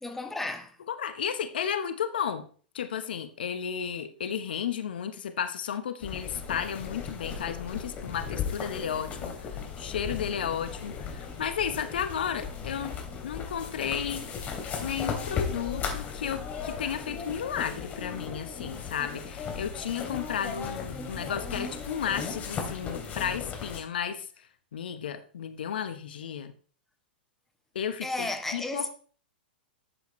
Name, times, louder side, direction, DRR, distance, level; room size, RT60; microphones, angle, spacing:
voice 1, 0.0-0.8 28.0-28.9, left 2 dB, 5° left, 1.6 m, -33 dB
voice 2, 0.9-2.4 2.7-12.9 13.2-14.2 14.8-24.5 24.7-26.5 27.7-28.9, left 8 dB, 65° left, 1.0 m, -33 dB
sound 1, 6.0-23.8, left 6 dB, 30° left, 3.0 m, -36 dB
12.0 x 8.3 x 3.1 m
figure-of-eight pair, 105°, 5 cm